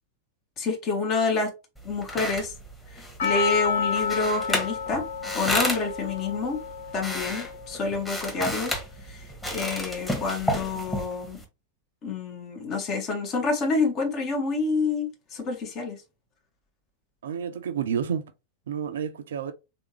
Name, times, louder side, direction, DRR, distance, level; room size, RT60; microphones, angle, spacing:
voice 1, 0.6-1.5 1.8-2.5 2.9-5.0 5.3-6.6 6.9-11.4 12.0-16.0, left 4 dB, 35° left, 1.4 m, -28 dB
sound 1, 1.8-11.4, left 1 dB, 5° left, 1.5 m, -33 dB
Percussion, 3.2-8.1, left 6 dB, 55° left, 1.0 m, -30 dB
voice 2, 17.2-18.2 18.7-19.5, right 7 dB, 60° right, 0.5 m, -30 dB
3.7 x 3.5 x 3.1 m
figure-of-eight pair, 90°, 0 cm